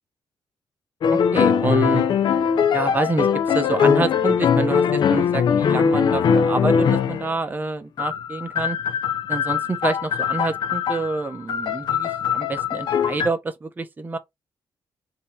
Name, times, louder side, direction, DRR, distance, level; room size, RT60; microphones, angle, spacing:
sound 1, 1.0-7.3 8.0-13.3, left 7 dB, 65° left, 0.5 m, -21 dB
voice 1, 1.1-2.0 2.7-8.8 9.3-14.2, right 3 dB, 20° right, 0.9 m, -27 dB
3.5 x 2.9 x 4.3 m
cardioid pair, 120°, 8 cm